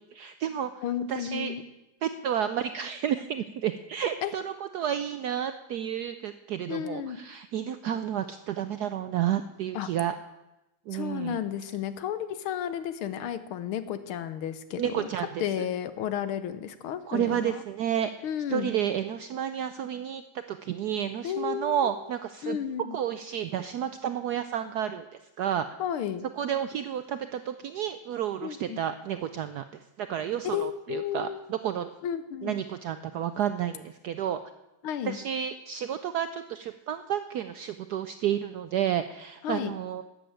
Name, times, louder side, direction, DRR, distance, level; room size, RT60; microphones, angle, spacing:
voice 1, 0.1-0.8 1.1-1.5 2.0-10.1 10.9-11.4 14.8-15.6 17.1-18.1 18.5-20.2 20.5-22.6 22.9-25.1 25.4-25.7 26.4-29.6 30.0-31.9 32.4-34.4 35.0-40.0, right 9 dB, 75° right, 10 dB, 0.9 m, -31 dB
voice 2, 0.8-1.6 4.2-4.3 6.7-7.2 9.7-9.9 10.9-15.1 15.4-17.6 18.2-18.7 21.2-21.9 22.4-23.0 25.8-26.3 28.4-28.8 30.4-31.4 32.0-32.6 34.8-35.2 39.4-39.7, left 9 dB, 85° left, 12 dB, 1.8 m, -32 dB
12.0 x 7.7 x 8.9 m, 0.98 s
omnidirectional pair, 2.3 m